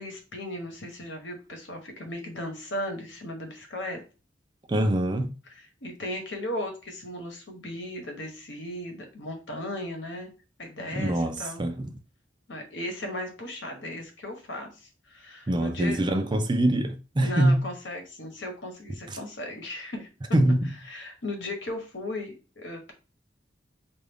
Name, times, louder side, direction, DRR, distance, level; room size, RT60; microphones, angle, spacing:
voice 1, 0.0-4.0 5.8-10.3 10.6-11.6 12.5-16.1 17.2-20.1 20.9-22.9, left 1 dB, 85° left, 1.2 m, -36 dB
voice 2, 4.7-5.3 10.9-11.9 15.5-17.6 19.1-19.2 20.3-20.7, right 1 dB, 25° right, 0.4 m, -24 dB
4.6 x 2.5 x 3.5 m
head